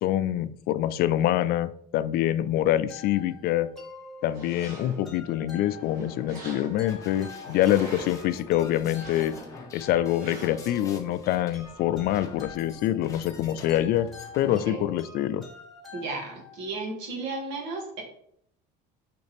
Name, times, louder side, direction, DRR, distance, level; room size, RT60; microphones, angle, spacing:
voice 1, 0.0-3.7 4.2-9.3 9.7-14.1 14.4-15.5, left 12 dB, 55° left, 14 dB, 0.4 m, -25 dB
sound 1, 2.9-16.7, left 3 dB, ahead, 1.9 m, -46 dB
sound 2, 4.2-5.1 5.6-7.0 7.4-8.3 8.8-9.6 10.2-10.8, right 2 dB, 90° right, 2.6 m, -44 dB
sound 3, 6.8-14.7, left 3 dB, 15° left, 1.3 m, -46 dB
voice 2, 14.4-14.9 15.9-18.0, right 3 dB, 70° right, 1 dB, 2.4 m, -34 dB
6.5 x 5.9 x 3.4 m, 0.67 s
cardioid pair, 145°, 19 cm